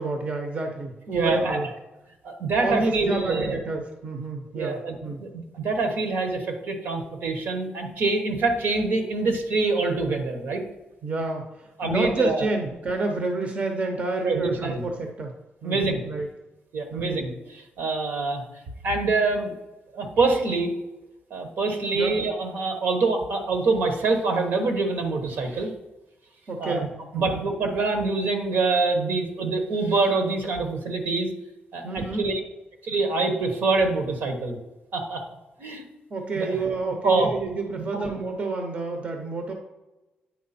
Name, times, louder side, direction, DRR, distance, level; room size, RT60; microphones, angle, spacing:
voice 1, 0.0-1.7 2.6-5.2 11.0-15.3 15.6-16.3 16.9-17.2 21.9-22.1 26.5-26.9 27.1-27.4 31.8-32.2 36.1-39.5, right 3 dB, 40° right, 3 dB, 0.8 m, -29 dB
voice 2, 1.1-1.6 2.2-3.6 4.5-10.6 11.8-12.5 14.2-14.8 15.6-16.0 16.7-18.4 18.8-19.5 19.9-20.7 21.3-25.7 26.6-26.9 27.1-31.3 31.7-32.4 32.8-34.6 34.9-35.2 35.6-35.8 36.3-36.6 37.0-37.3, right 3 dB, 70° right, 4 dB, 1.3 m, -25 dB
9.4 x 4.6 x 4.3 m, 1.1 s
wide cardioid pair, 145°, 4 cm